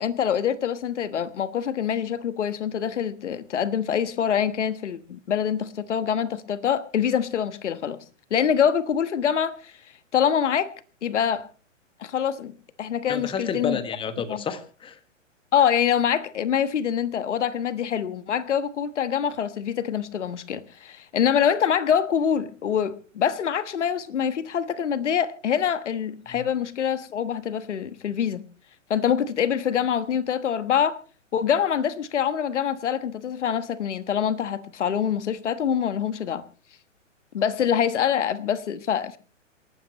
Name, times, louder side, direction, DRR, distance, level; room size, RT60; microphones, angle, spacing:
voice 1, 0.0-8.0 8.3-9.8 10.1-10.7 11.0-11.5 12.0-13.8 14.3-14.4 15.5-28.4 28.9-31.0 31.3-36.4 37.3-39.2, left 8 dB, 65° left, 1.4 m, -25 dB
voice 2, 13.1-15.0 26.3-26.4, left 6 dB, 15° left, 1.4 m, -30 dB
27.5 x 12.0 x 3.0 m
figure-of-eight pair, 120°, 38 cm